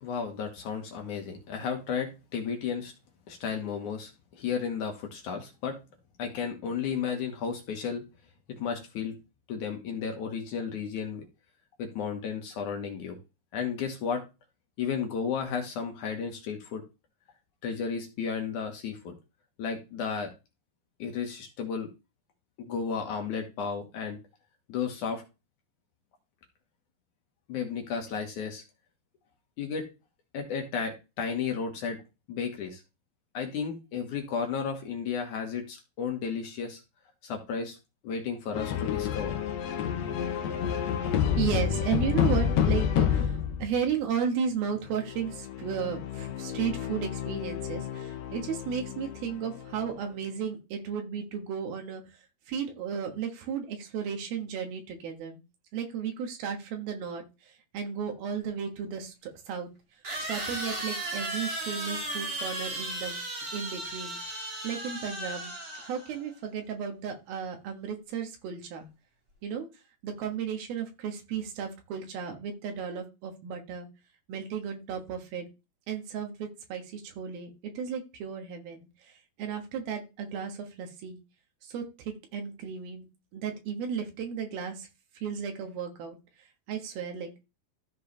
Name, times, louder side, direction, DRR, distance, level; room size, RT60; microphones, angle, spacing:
voice 1, 0.0-2.9 3.3-5.8 6.2-8.0 8.5-9.1 9.5-11.2 11.8-13.2 13.5-14.2 14.8-16.8 17.6-19.1 19.6-20.3 21.0-21.9 22.6-24.2 24.7-25.2 27.5-28.6 29.6-29.9 30.3-32.0 32.3-32.8 33.3-36.8 37.2-37.8 38.0-39.3, left 6 dB, 65° left, 3 dB, 2.4 m, -33 dB
sound 1, 38.5-43.7 44.9-49.8, left 9 dB, 80° left, 1.5 m, -29 dB
voice 2, 41.3-52.0 52.5-55.4 55.7-59.7 60.3-63.2 63.5-64.2 64.6-65.5 65.8-68.9 69.4-69.7 70.0-73.9 74.3-75.5 75.9-81.2 81.6-84.9 85.2-86.2 86.7-87.4, right 7 dB, 80° right, 4 dB, 3.2 m, -34 dB
sound 2, 58.4-58.5 60.0-66.2, right 2 dB, 30° right, 2.1 m, -35 dB
13.5 x 4.6 x 3.2 m, 0.27 s
omnidirectional pair, 4.3 m